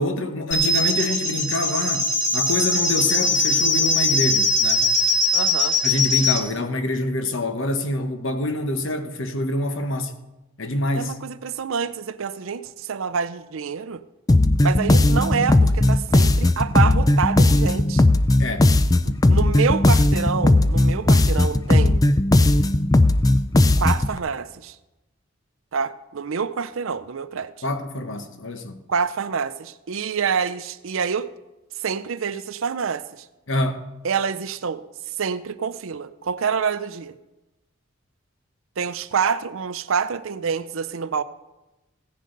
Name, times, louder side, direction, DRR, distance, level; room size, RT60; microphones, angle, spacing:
voice 1, 0.0-4.9 5.8-10.2 10.6-11.1 18.4-18.7 27.6-28.8 33.5-33.9, left 2 dB, 65° left, 1.1 m, -26 dB
sound 1, 0.5-6.4, left 2 dB, 35° left, 1.5 m, -21 dB
voice 2, 5.3-5.8 11.0-14.0 14.6-18.1 19.1-22.0 23.8-24.8 25.7-27.5 28.9-31.3 31.7-33.2 34.0-34.8 35.2-37.1 38.8-41.2, right 6 dB, 75° right, 0.5 m, -27 dB
sound 2, 14.3-24.1, left 2 dB, 15° left, 0.3 m, -17 dB
16.0 x 10.0 x 3.9 m
head